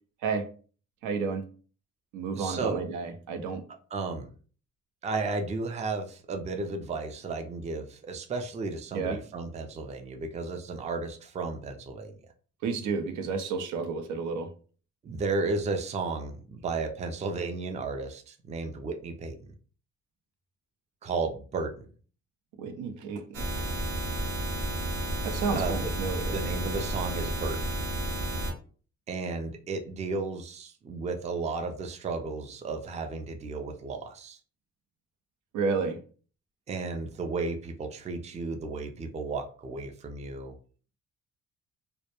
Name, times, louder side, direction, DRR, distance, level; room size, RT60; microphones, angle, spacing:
voice 1, 1.0-1.4 2.1-3.6 8.9-9.2 12.6-14.5 22.6-23.4 25.2-26.3 35.5-36.0, right 5 dB, 80° right, 7 dB, 0.5 m, -31 dB
voice 2, 2.3-2.8 3.9-4.3 5.0-12.2 15.0-19.5 21.0-21.9 25.5-25.8 26.3-27.6 29.1-34.4 36.7-40.6, right 3 dB, 25° right, 5 dB, 0.3 m, -33 dB
sound 1, 23.3-28.5, right 1 dB, 55° right, 0.8 m, -31 dB
2.1 x 2.0 x 2.9 m, 0.41 s
cardioid pair, 90°, 30 cm